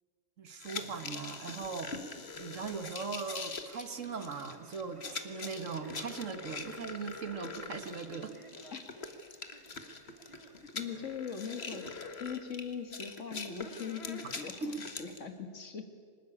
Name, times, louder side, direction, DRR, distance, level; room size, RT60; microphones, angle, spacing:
voice 1, 0.4-2.0 2.4-8.4 14.3-14.7, right 5 dB, 85° right, 9 dB, 1.8 m, -40 dB
sound 1, 0.6-15.2, left 4 dB, 55° left, 1.8 m, -43 dB
Male speech man speaking, 3.9-11.2, right 1 dB, 25° right, 2.4 m, -57 dB
voice 2, 10.4-15.8, left 6 dB, 75° left, 7 dB, 2.0 m, -41 dB
25.0 x 20.0 x 9.9 m, 2.1 s
omnidirectional pair, 1.3 m